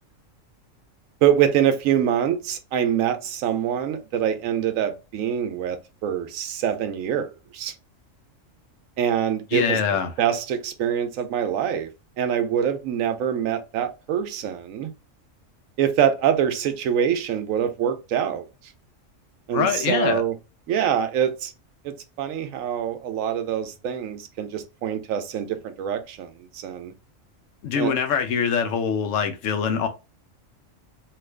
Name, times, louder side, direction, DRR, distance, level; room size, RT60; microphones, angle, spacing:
voice 1, 1.2-5.8 6.0-7.7 9.0-11.9 12.2-14.9 15.8-18.5 19.5-20.3 20.7-21.5 21.8-26.9 27.7-27.9, right 9 dB, 85° right, 1.0 m, -25 dB
voice 2, 9.5-10.1 19.5-20.2 27.6-29.9, left 7 dB, 75° left, 1.0 m, -23 dB
3.0 x 2.4 x 3.2 m
omnidirectional pair, 1.4 m